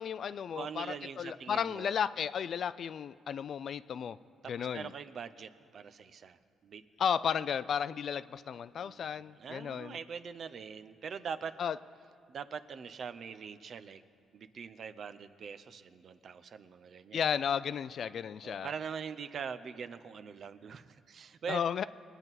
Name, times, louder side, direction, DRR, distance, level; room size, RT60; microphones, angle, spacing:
voice 1, 0.0-4.2 4.5-4.9 7.0-10.0 11.6-11.8 17.1-18.7 21.5-21.8, left 8 dB, 60° left, 16 dB, 0.3 m, -34 dB
voice 2, 0.5-1.9 4.4-6.8 8.8-11.6 12.3-14.0 14.3-17.2 18.4-21.7, right 6 dB, 55° right, 11 dB, 0.6 m, -43 dB
21.0 x 9.0 x 4.1 m, 2.5 s
cardioid pair, 90°, 0 cm